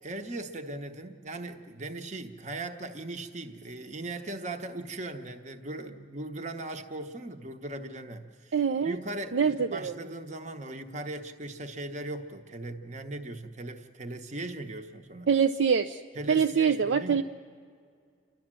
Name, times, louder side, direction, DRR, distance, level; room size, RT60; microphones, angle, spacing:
voice 1, 0.0-15.3 16.1-17.2, right 2 dB, 40° right, 6 dB, 1.1 m, -39 dB
voice 2, 8.5-9.0 9.3-9.9 15.3-16.0 16.3-17.2, right 6 dB, 85° right, 8 dB, 0.5 m, -24 dB
28.5 x 12.0 x 7.5 m, 2.2 s
head